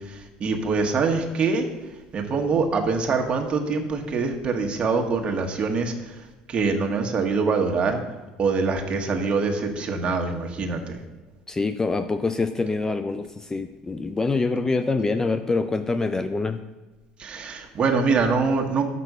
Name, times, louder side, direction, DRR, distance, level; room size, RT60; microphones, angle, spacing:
voice 1, 0.4-1.7 2.1-5.9 6.5-8.0 8.4-11.0 17.2-18.8, right 4 dB, 35° right, 2 dB, 1.4 m, -24 dB
voice 2, 11.5-16.6, left 3 dB, 20° left, 9 dB, 0.4 m, -25 dB
6.0 x 5.9 x 6.7 m, 1.2 s
supercardioid pair, 95°, 3 cm